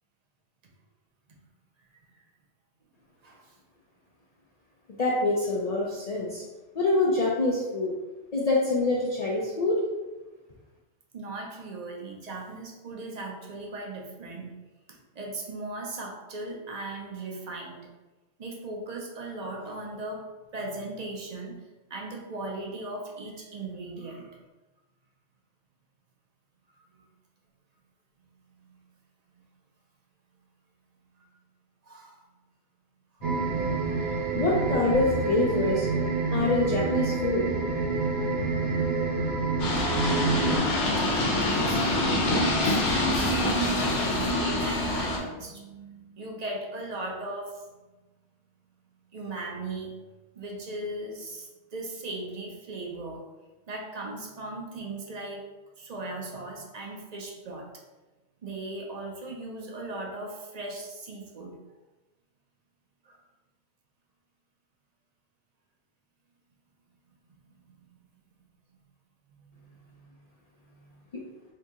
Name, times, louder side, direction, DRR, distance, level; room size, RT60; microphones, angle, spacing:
voice 1, 3.2-3.5 11.1-14.5 14.9-17.9 18.4-20.2 20.5-21.6 21.9-24.4 26.9-27.0 28.6-28.7 29.3-29.4 31.8-32.2 40.8-47.7 49.1-49.9 50.3-53.3 53.7-55.5 55.8-57.7 58.4-61.6 63.0-63.2 67.3-68.5 70.0-70.1 70.7-71.0, right 2 dB, 50° right, 0 dB, 0.5 m, -38 dB
voice 2, 5.0-6.4 6.7-7.9 8.3-9.8 34.3-35.9 36.3-37.5 71.1-71.2, left 2 dB, 55° left, -5 dB, 0.4 m, -25 dB
sound 1, 33.2-40.6, right 4 dB, 80° right, 0.9 m, -27 dB
sound 2, 39.6-45.2, left 1 dB, 80° left, 1.0 m, -25 dB
2.8 x 2.7 x 3.5 m, 1.1 s
omnidirectional pair, 1.2 m